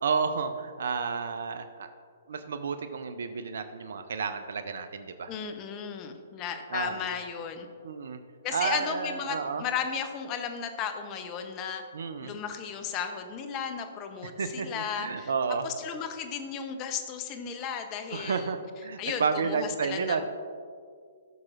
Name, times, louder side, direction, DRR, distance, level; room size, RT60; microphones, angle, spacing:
voice 1, 0.0-1.9 2.3-5.3 6.7-7.0 7.8-8.2 8.5-9.6 11.9-12.3 14.2-15.7 18.1-20.2, right 5 dB, 65° right, 9 dB, 0.5 m, -31 dB
voice 2, 5.3-7.7 8.4-11.8 12.2-15.3 15.6-18.5 19.0-20.2, left 7 dB, 30° left, 7 dB, 0.7 m, -35 dB
13.0 x 6.1 x 2.5 m, 2.1 s
figure-of-eight pair, 120°, 0 cm